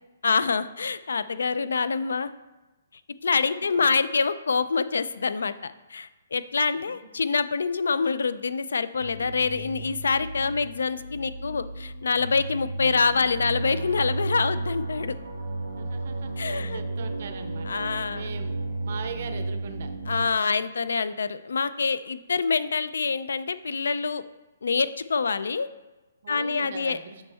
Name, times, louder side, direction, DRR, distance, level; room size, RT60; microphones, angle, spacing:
voice 1, 0.2-2.3 3.2-15.2 16.4-16.8 17.7-18.2 20.1-24.2 24.6-25.7 26.3-27.0, left 5 dB, 90° left, 14 dB, 0.4 m, -26 dB
voice 2, 3.4-3.9 6.9-7.0 15.7-18.6 18.8-19.9 26.2-27.2, right 5 dB, 45° right, 8 dB, 0.6 m, -40 dB
sound 1, 9.0-20.3, right 2 dB, 85° right, 1.1 m, -33 dB
7.1 x 5.3 x 3.4 m, 1.1 s
hypercardioid pair, 170°, 0 cm